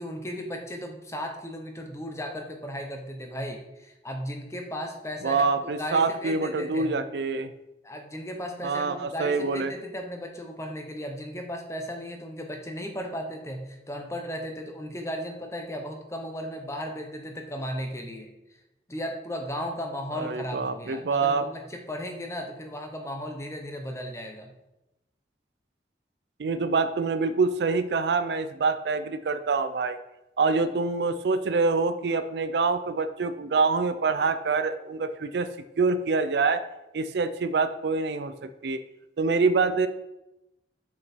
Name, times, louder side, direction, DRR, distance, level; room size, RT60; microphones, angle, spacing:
voice 1, 0.0-5.5 5.8-7.0 7.8-18.3 18.9-24.5, equal, 15° left, 3 dB, 0.9 m, -36 dB
voice 2, 5.2-7.5 8.6-9.7 20.1-21.4 26.4-30.0 30.4-35.5 35.8-36.6 36.9-38.8 39.2-39.9, right 4 dB, 70° right, 11 dB, 0.4 m, -25 dB
6.3 x 5.9 x 4.4 m, 0.94 s
head